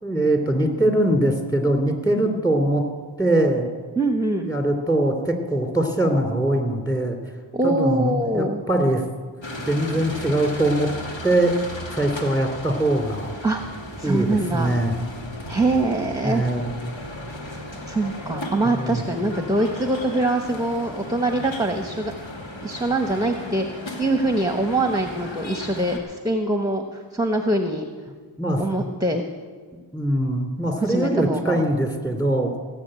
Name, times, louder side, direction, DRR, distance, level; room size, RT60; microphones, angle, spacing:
voice 1, 0.0-2.8 3.2-3.7 4.4-7.2 7.6-9.0 9.6-10.9 11.2-11.6 11.9-13.3 14.0-15.0 16.2-16.8 18.6-19.0 28.4-28.9 29.9-32.5, right 1 dB, 10° left, 4 dB, 3.0 m, -22 dB
voice 2, 4.0-4.5 7.5-8.6 13.4-13.6 14.0-14.7 15.5-16.4 17.9-22.1 22.6-27.8 28.6-29.2 30.8-31.6, right 2 dB, 10° right, 5 dB, 1.2 m, -23 dB
sound 1, 9.4-26.0, left 1 dB, 65° left, 2.4 m, -36 dB
17.0 x 7.2 x 9.0 m, 1.5 s
cardioid pair, 55°, 48 cm